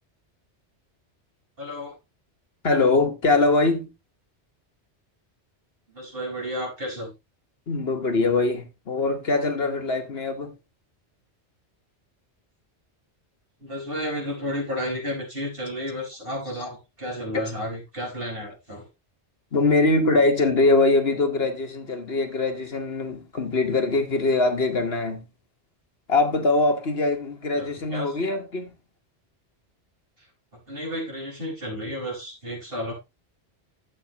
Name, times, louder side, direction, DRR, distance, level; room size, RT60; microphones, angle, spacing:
voice 1, 1.6-2.0 5.9-7.1 13.6-18.9 27.6-28.2 30.7-32.9, equal, 55° right, 5.9 m, -32 dB
voice 2, 2.6-3.9 7.7-10.5 17.3-17.4 19.5-25.2 26.1-28.7, left 3 dB, 60° left, 1.6 m, -22 dB
12.5 x 8.1 x 2.9 m
omnidirectional pair, 1.2 m